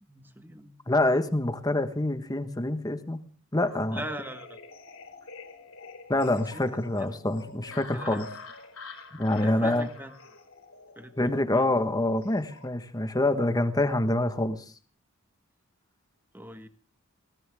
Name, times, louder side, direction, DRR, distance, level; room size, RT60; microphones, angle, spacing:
voice 1, 0.1-0.7 3.9-4.6 6.4-6.7 7.1-7.2 7.7-8.4 9.4-10.1 10.9-11.7 16.3-16.7, right 1 dB, 10° right, 8 dB, 1.6 m, -42 dB
voice 2, 0.9-3.2 3.5-4.0 6.1-8.2 9.1-9.9 11.2-14.6, left 1 dB, 20° left, 9 dB, 1.4 m, -26 dB
sound 1, 3.6-12.7, left 3 dB, 75° left, 3.7 m, -46 dB
20.0 x 18.5 x 3.6 m, 0.39 s
head